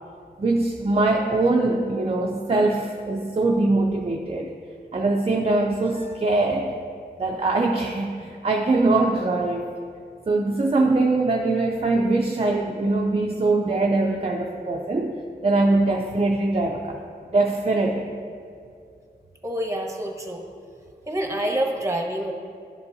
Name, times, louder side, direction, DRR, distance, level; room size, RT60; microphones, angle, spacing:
voice 1, 0.4-4.5 4.9-6.8 7.2-9.7 10.3-15.2 15.4-17.0 17.3-18.1, right 2 dB, 35° right, 0 dB, 0.5 m, -22 dB
voice 2, 19.4-20.4 21.1-22.3, right 1 dB, 20° right, 1 dB, 1.1 m, -27 dB
11.5 x 5.2 x 2.7 m, 2.4 s
cardioid pair, 40°, 17 cm